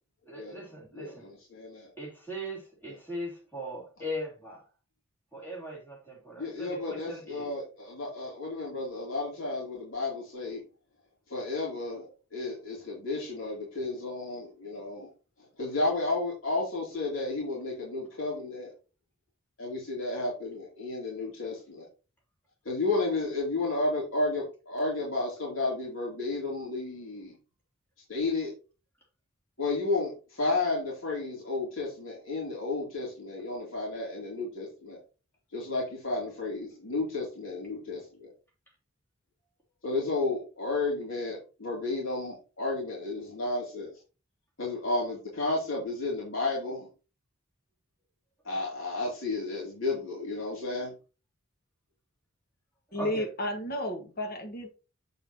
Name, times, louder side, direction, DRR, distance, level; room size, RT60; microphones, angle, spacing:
voice 1, 0.2-1.3 2.0-4.6 5.3-7.5 52.9-53.3, equal, 10° left, 3.6 m, -39 dB
voice 2, 1.5-1.9 6.4-10.6 11.3-15.1 15.6-18.7 19.6-21.9 22.7-27.3 28.1-28.5 29.6-35.0 35.5-38.3 39.8-43.9 44.6-46.9 48.4-50.9, left 2 dB, 80° left, 3.3 m, -32 dB
voice 3, 52.9-54.7, left 1 dB, 50° left, 1.9 m, -32 dB
8.4 x 6.9 x 3.0 m
head